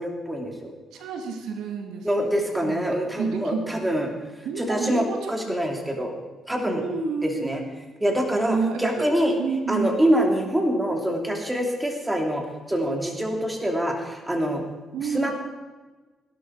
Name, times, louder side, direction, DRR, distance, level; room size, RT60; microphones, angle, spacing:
voice 1, 0.0-0.7 2.0-4.1 4.6-6.1 6.5-6.8 7.2-7.6 8.0-9.3 9.7-14.6 15.1-15.3, equal, 10° right, 3 dB, 2.8 m, -25 dB
voice 2, 0.9-2.8 3.2-3.9 4.4-5.6 5.9-6.0 6.7-7.7 8.5-9.1 9.4-9.9 14.9-15.3, right 5 dB, 85° right, 4 dB, 2.0 m, -30 dB
17.0 x 12.0 x 4.7 m, 1.2 s
cardioid pair, 90°, 0 cm